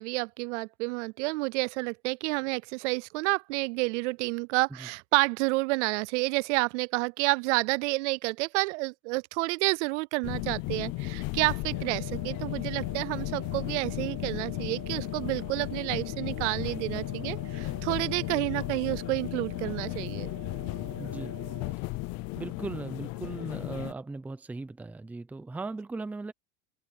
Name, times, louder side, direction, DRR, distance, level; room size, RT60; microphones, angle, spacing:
voice 1, 0.0-20.3, right 25 dB, 60° right, 0.5 m, -29 dB
sound 1, 10.2-23.9, left 22 dB, 40° left, 0.7 m, -35 dB
sound 2, 11.7-21.7, right 9 dB, 30° right, 1.8 m, -48 dB
voice 2, 21.0-21.3 22.4-26.3, right 3 dB, 5° right, 0.6 m, -38 dB
supercardioid pair, 155°, 39 cm